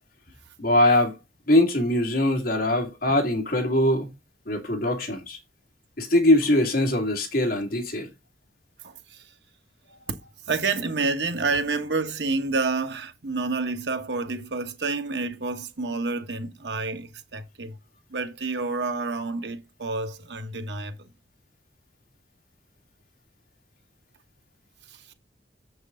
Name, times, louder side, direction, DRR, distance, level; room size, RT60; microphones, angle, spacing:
voice 1, 0.6-1.2 1.5-4.1 4.5-5.4 6.0-8.1, left 1 dB, 55° left, 2.2 m, -22 dB
voice 2, 8.8-9.2 9.9-17.8 18.1-20.9 24.9-25.1, right 3 dB, 80° right, 1.3 m, -29 dB
7.4 x 6.4 x 3.8 m
head